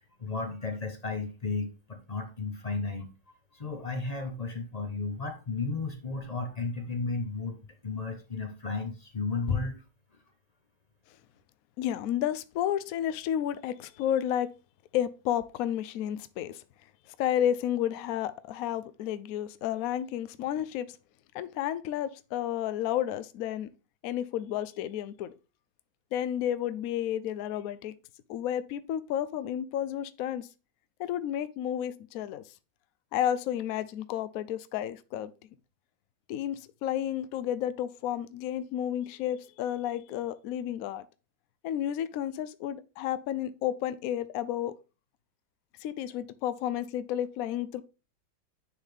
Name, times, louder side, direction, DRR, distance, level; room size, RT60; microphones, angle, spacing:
voice 1, 0.0-3.1 3.5-7.6 7.8-9.8, left 4 dB, 40° left, 0.5 m, -33 dB
voice 2, 11.8-14.5 14.9-16.6 17.2-20.9 21.3-23.7 24.0-25.3 26.1-27.9 28.3-30.5 31.0-32.4 33.1-35.3 36.3-41.0 41.6-44.8 45.8-47.8, left 11 dB, 75° left, 0.8 m, -31 dB
9.8 x 4.0 x 3.4 m
omnidirectional pair, 2.1 m